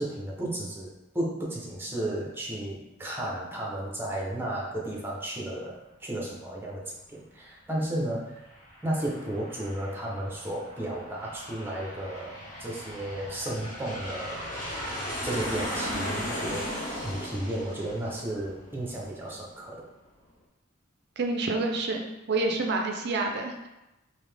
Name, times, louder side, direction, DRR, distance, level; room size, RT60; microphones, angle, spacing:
voice 1, 0.0-8.4 8.8-14.4 15.2-19.9, right 1 dB, 10° right, -3 dB, 0.8 m, -33 dB
Aircraft, 8.3-19.5, equal, 40° left, 1.2 m, -37 dB
voice 2, 21.2-23.7, right 3 dB, 55° right, 2 dB, 0.5 m, -28 dB
3.9 x 2.7 x 3.4 m, 0.95 s
head